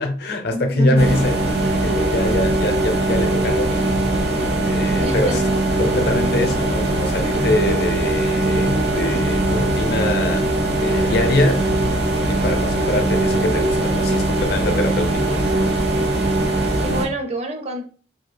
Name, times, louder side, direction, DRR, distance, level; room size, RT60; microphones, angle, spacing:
voice 1, 0.0-1.4 1.8-4.1 4.7-5.4 5.8-10.5 10.8-11.7 12.3-15.4, left 1 dB, 60° left, 0.6 m, -23 dB
voice 2, 0.5-1.3 5.0-5.6 16.8-17.8, equal, 35° right, 0.4 m, -27 dB
sound 1, 1.0-17.0, right 2 dB, 60° right, 0.9 m, -20 dB
sound 2, 1.6-15.1, left 2 dB, 85° right, 0.6 m, -30 dB
2.7 x 2.4 x 3.3 m
head